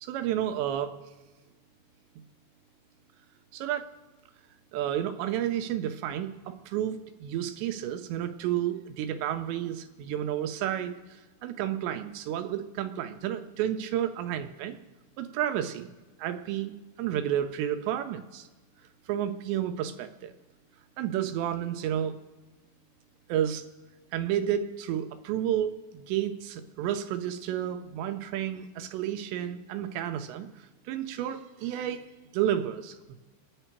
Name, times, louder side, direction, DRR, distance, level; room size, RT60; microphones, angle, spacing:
voice 1, 0.0-1.0 3.5-3.9 4.7-14.8 15.2-15.9 16.2-18.5 19.1-20.3 21.0-22.2 23.3-23.7 24.1-32.1 32.3-33.2, right 10 dB, 80° right, 8 dB, 2.7 m, -31 dB
29.5 x 10.0 x 4.5 m, 1.2 s
omnidirectional pair, 5.5 m